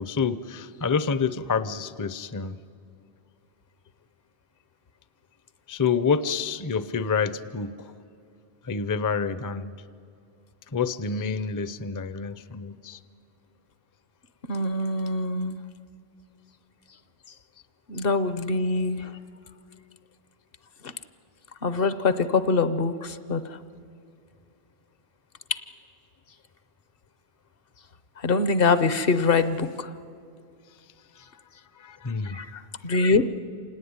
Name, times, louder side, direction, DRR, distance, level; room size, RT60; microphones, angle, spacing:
voice 1, 0.0-2.6 5.7-7.8 8.6-9.7 10.7-13.0 31.8-32.4, left 5 dB, 25° left, 14 dB, 0.5 m, -28 dB
voice 2, 14.5-15.6 17.9-19.1 21.6-23.4 28.2-29.9 32.3-33.3, left 3 dB, 65° left, 13 dB, 1.1 m, -24 dB
26.5 x 18.5 x 9.6 m, 2.4 s
omnidirectional pair, 1.0 m